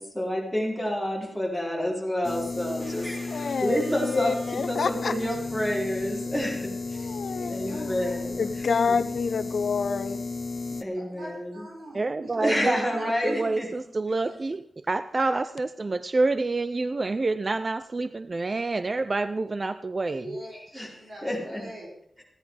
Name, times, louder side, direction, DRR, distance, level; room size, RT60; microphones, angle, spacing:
voice 1, 0.0-7.2 7.5-9.0 10.8-11.7 12.3-13.7 20.7-20.9 21.2-21.6, equal, 10° right, -3 dB, 4.4 m, -29 dB
sound 1, 2.2-10.8, left 3 dB, 40° left, 0.6 m, -34 dB
voice 2, 2.8-4.6 7.2-8.2 10.9-13.5 20.1-21.9, right 1 dB, 65° right, -4 dB, 5.4 m, -43 dB
voice 3, 3.3-3.8 4.1-5.1 7.0-7.9 8.4-10.2, left 5 dB, 75° left, 10 dB, 0.8 m, -28 dB
voice 4, 11.9-20.3, right 3 dB, 35° right, 12 dB, 0.5 m, -28 dB
16.0 x 10.5 x 4.9 m, 0.67 s
wide cardioid pair, 130°, 0 cm